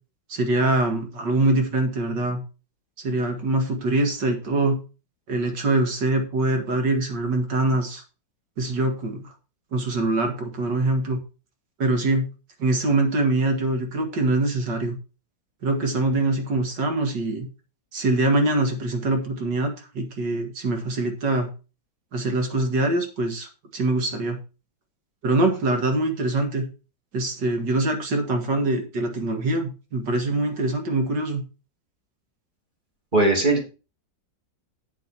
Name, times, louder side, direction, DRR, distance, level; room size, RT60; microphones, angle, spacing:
voice 1, 0.3-2.4 3.0-4.8 5.3-8.0 8.6-9.3 9.7-11.2 11.8-12.3 12.6-15.0 15.6-17.5 17.9-21.5 22.1-24.4 25.2-26.6 27.1-31.4, right 2 dB, 70° right, 4 dB, 2.5 m, -24 dB
voice 2, 33.1-33.7, right 2 dB, 25° right, 1 dB, 2.6 m, -19 dB
8.4 x 7.9 x 4.2 m, 0.32 s
omnidirectional pair, 2.0 m